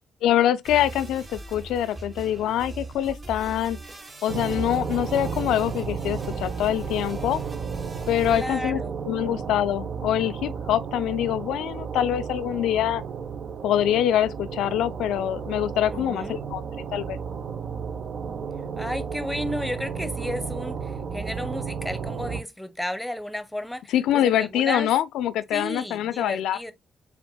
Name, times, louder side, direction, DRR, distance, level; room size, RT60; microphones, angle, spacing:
voice 1, 0.2-3.8 4.2-7.4 8.1-13.0 13.6-16.6 16.9-17.2 23.9-26.6, left 11 dB, 70° left, 0.4 m, -24 dB
sound 1, 0.6-8.5, right 2 dB, 40° right, 1.2 m, -40 dB
sound 2, 4.3-22.4, right 6 dB, 55° right, 0.6 m, -33 dB
voice 2, 8.2-8.9 15.9-16.4 18.8-24.9 25.5-26.7, left 1 dB, 5° left, 0.8 m, -33 dB
7.0 x 2.5 x 2.2 m
hypercardioid pair, 45°, 0 cm